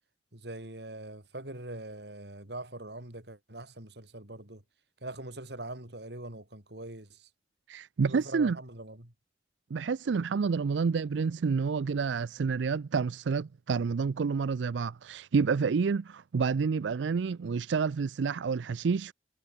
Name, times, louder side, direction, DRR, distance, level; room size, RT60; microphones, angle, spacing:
voice 1, 0.3-4.6 5.0-7.3 8.0-9.1, right 2 dB, 70° right, 3.7 m, -42 dB
voice 2, 7.7-8.6 9.7-19.1, right 5 dB, 85° right, 0.4 m, -29 dB
head